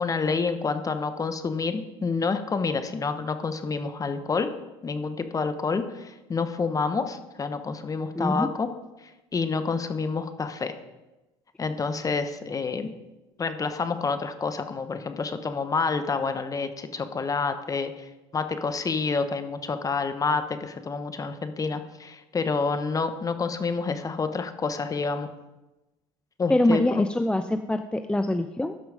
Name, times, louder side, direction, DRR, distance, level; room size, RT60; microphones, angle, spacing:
voice 1, 0.0-4.5 4.8-8.7 9.3-10.7 11.6-12.9 13.4-17.9 18.3-25.3 26.4-27.1, left 4 dB, 25° left, 9 dB, 1.1 m, -28 dB
voice 2, 8.1-8.5 26.5-28.9, left 1 dB, 10° left, 8 dB, 0.5 m, -24 dB
12.5 x 6.1 x 5.0 m, 1.0 s
supercardioid pair, 80°, 13 cm